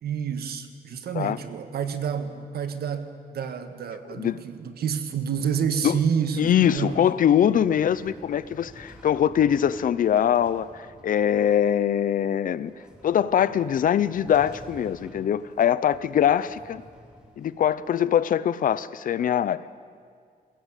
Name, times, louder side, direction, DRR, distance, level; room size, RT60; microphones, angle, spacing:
voice 1, 0.0-7.0, right 7 dB, 90° right, 8 dB, 1.6 m, -29 dB
voice 2, 6.4-12.7 13.0-16.8 17.4-19.6, left 9 dB, 60° left, 17 dB, 0.6 m, -22 dB
sound 1, 6.5-18.2, equal, 5° right, 2.8 m, -51 dB
21.5 x 17.0 x 8.3 m, 2.1 s
wide cardioid pair, 175°, 16 cm